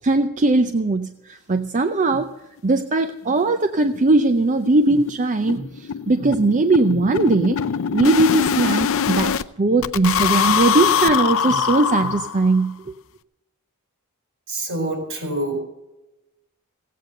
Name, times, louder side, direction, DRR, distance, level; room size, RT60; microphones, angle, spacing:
voice 1, 0.0-2.3 2.6-5.7 6.1-7.6 7.9-12.8, right 2 dB, 35° right, 8 dB, 0.6 m, -19 dB
sound 1, 2.6-2.7 3.0-3.1 3.4-3.5 3.8-4.0 4.2-9.4 9.8-12.6, left 7 dB, 65° left, 0.5 m, -23 dB
voice 2, 14.5-15.6, right 1 dB, 65° right, 4 dB, 4.2 m, -26 dB
16.0 x 8.5 x 6.5 m, 0.98 s
head